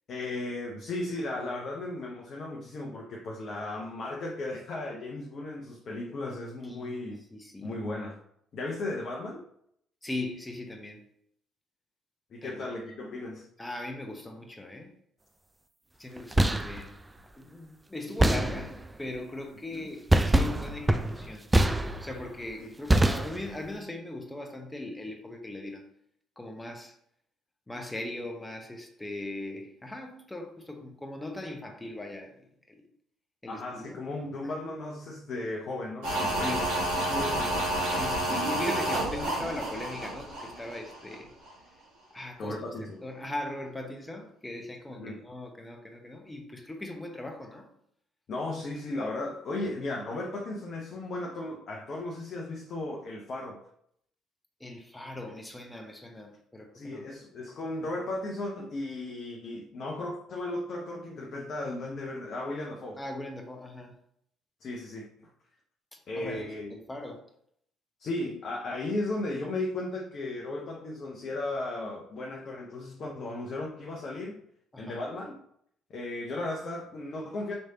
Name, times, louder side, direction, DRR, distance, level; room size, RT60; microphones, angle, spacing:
voice 1, 0.1-7.2 7.6-8.2 8.5-9.5 12.3-13.5 19.7-19.9 22.6-22.8 33.5-36.5 36.8-37.6 42.4-43.0 45.0-45.2 48.3-53.7 56.7-63.0 64.6-65.3 66.1-66.7 68.0-74.4 74.8-75.4 75.9-77.5, left 2 dB, 50° left, -1 dB, 0.7 m, -35 dB
voice 2, 6.7-7.8 10.0-11.0 12.4-12.9 13.6-14.9 16.0-17.0 17.4-21.5 22.0-25.9 26.4-27.0 27.7-32.8 33.4-34.0 36.4-36.8 37.9-41.3 42.1-42.6 43.0-47.7 54.6-57.1 63.0-63.9 65.9-67.2 74.7-75.0, left 1 dB, 15° left, 3 dB, 1.0 m, -39 dB
sound 1, 16.2-16.9 18.2-18.9 20.1-22.3 22.9-23.7, right 1 dB, 15° right, 0.4 m, -25 dB
sound 2, 36.0-41.2 41.5-41.6, right 1 dB, 80° right, 1.7 m, -30 dB
5.3 x 3.2 x 2.8 m, 0.68 s
hypercardioid pair, 50°, 0 cm